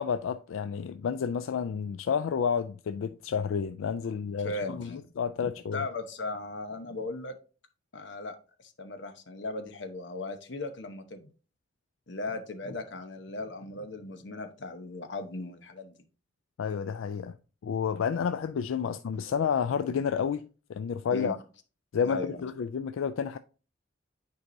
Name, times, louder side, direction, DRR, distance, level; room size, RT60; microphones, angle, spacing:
voice 1, 0.0-5.8 16.6-17.3 17.6-21.4 21.9-23.4, left 7 dB, 90° left, 0.4 m, -30 dB
voice 2, 4.4-5.1 5.7-7.4 7.9-11.3 12.1-16.0 21.1-21.4 22.0-22.4, left 2 dB, 65° left, 0.9 m, -37 dB
9.4 x 4.7 x 2.6 m
head